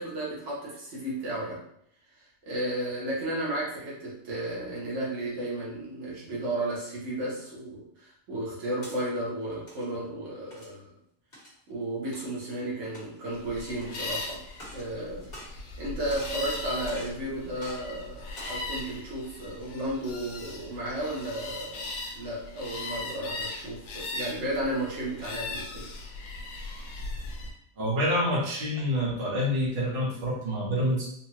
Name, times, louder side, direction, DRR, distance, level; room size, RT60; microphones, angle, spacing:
voice 1, 0.0-1.6 2.5-10.9 11.7-14.4 14.7-15.3 15.8-25.9, right 1 dB, 80° right, -6 dB, 1.3 m, -33 dB
sound 1, 8.8-9.0 9.5-9.8 10.5-10.8 11.3-11.6 12.1-12.3 12.8-13.3 13.8-13.9 14.5-14.9 15.2-15.8 16.1-16.4 16.9-17.2 17.6-17.8 18.2-18.6, equal, 50° left, 1.4 m, -45 dB
sound 2, 13.3-27.5, left 2 dB, 85° left, 1.0 m, -39 dB
voice 2, 27.8-31.0, equal, 50° right, -5 dB, 1.2 m, -27 dB
4.0 x 2.1 x 2.8 m, 0.71 s
omnidirectional pair, 1.2 m